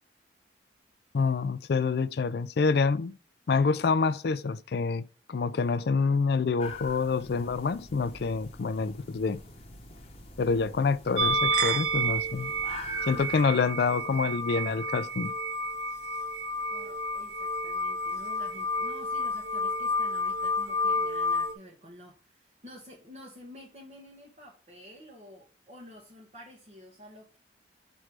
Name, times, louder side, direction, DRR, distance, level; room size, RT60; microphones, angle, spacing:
voice 1, 1.1-3.1 3.5-5.0 5.3-9.4 10.4-12.5 13.1-15.3, left 4 dB, 60° left, 0.4 m, -27 dB
sound 1, 6.6-13.4, left 2 dB, 35° left, 1.0 m, -45 dB
sound 2, 11.2-21.5, equal, 70° right, 0.9 m, -30 dB
voice 2, 16.7-27.4, equal, 35° right, 1.2 m, -50 dB
6.2 x 3.3 x 5.9 m
head